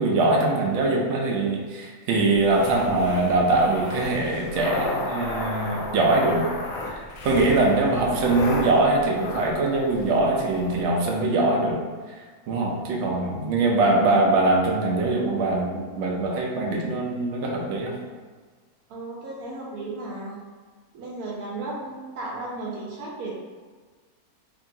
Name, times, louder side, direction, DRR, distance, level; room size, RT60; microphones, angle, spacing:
voice 1, 0.0-6.5 7.2-11.8 12.5-17.9, right 2 dB, 65° right, -2 dB, 0.8 m, -22 dB
sound 1, 2.3-10.8, left 1 dB, 70° left, 1.0 m, -33 dB
voice 2, 18.9-20.4 20.9-23.3, right 2 dB, 85° right, -3 dB, 1.2 m, -34 dB
2.8 x 2.7 x 2.6 m, 1.5 s
omnidirectional pair, 1.6 m